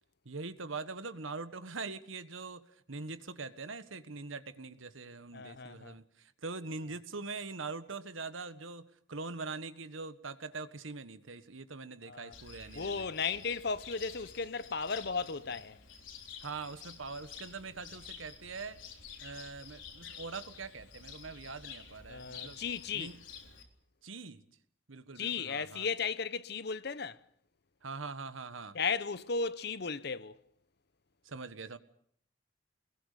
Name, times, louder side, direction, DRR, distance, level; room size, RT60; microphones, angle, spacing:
voice 1, 0.2-13.1 16.4-18.8 19.2-22.6 22.9-23.2 24.0-24.4 24.9-25.9 27.8-28.8 31.2-31.8, right 4 dB, 80° right, 1.4 m, -43 dB
voice 2, 5.3-6.0 12.0-12.3 12.7-15.8 22.1-23.2 25.2-27.2 28.7-30.4, left 5 dB, 55° left, 0.9 m, -35 dB
Cricket, 12.3-23.6, left 6 dB, 75° left, 3.8 m, -50 dB
24.5 x 21.0 x 6.8 m
head